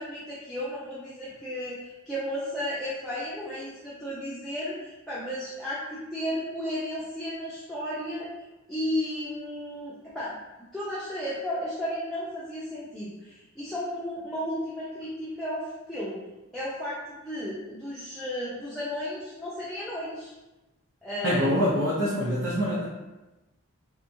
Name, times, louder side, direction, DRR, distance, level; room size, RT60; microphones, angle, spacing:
voice 1, 0.0-8.3 8.7-10.4 10.7-16.3 16.5-20.3 21.0-21.5, equal, ahead, -10 dB, 0.5 m, -34 dB
voice 2, 21.2-22.9, equal, 60° right, -8 dB, 0.7 m, -25 dB
3.5 x 2.9 x 2.6 m, 1.0 s
head